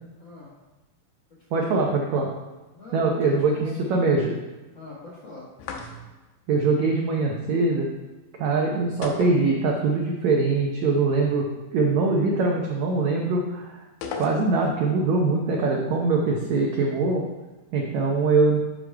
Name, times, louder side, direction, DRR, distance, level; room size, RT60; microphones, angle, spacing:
voice 1, 0.2-0.5 1.5-1.8 2.7-4.0 4.7-5.5 8.6-8.9, left 3 dB, 55° left, -7 dB, 1.3 m, -43 dB
voice 2, 1.5-2.3 2.9-4.4 6.5-7.9 8.4-13.8 14.2-17.2 17.7-18.6, right 3 dB, 85° right, 0 dB, 1.6 m, -23 dB
sound 1, 5.6-6.3 9.0-10.1 10.3-10.4 14.0-14.8, left 4 dB, 75° left, 2.4 m, -36 dB
8.2 x 6.1 x 4.7 m, 1.1 s
omnidirectional pair, 4.3 m